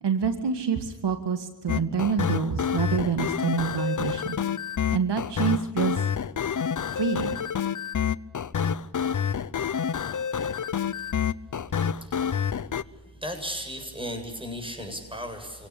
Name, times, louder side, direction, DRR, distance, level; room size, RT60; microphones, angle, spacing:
voice 1, 0.0-4.4 4.9-6.0 6.9-7.4, right 6 dB, 75° right, 8 dB, 2.0 m, -27 dB
sound 1, 1.7-12.8, left 7 dB, 45° left, 0.9 m, -28 dB
voice 2, 11.9-12.4 13.1-15.7, equal, 10° right, 5 dB, 7.8 m, -36 dB
27.0 x 17.5 x 8.6 m, 1.1 s
cardioid pair, 70°, 41 cm